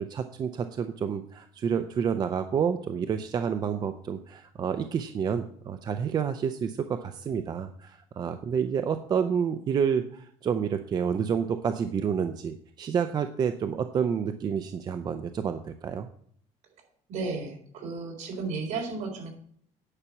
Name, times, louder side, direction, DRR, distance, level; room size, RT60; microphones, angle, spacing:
voice 1, 0.0-16.1, right 7 dB, 30° right, 8 dB, 0.5 m, -29 dB
voice 2, 17.1-19.3, right 4 dB, 60° right, 1 dB, 3.9 m, -33 dB
9.9 x 5.8 x 7.2 m, 0.63 s
cardioid pair, 165°, 14 cm